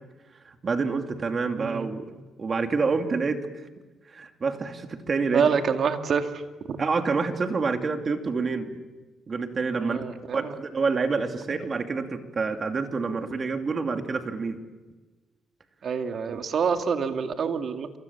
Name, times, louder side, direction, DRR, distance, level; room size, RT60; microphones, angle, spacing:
voice 1, 0.4-2.0 2.4-3.4 4.1-5.5 6.8-8.8 9.3-10.0 10.3-14.6, right 4 dB, 40° right, 5 dB, 2.7 m, -27 dB
voice 2, 1.6-1.9 5.3-6.3 6.7-6.8 9.8-10.5 11.5-11.6 15.8-18.0, right 6 dB, 55° right, 5 dB, 2.4 m, -26 dB
28.0 x 25.0 x 7.3 m, 1.3 s
cardioid pair, 90°, 0 cm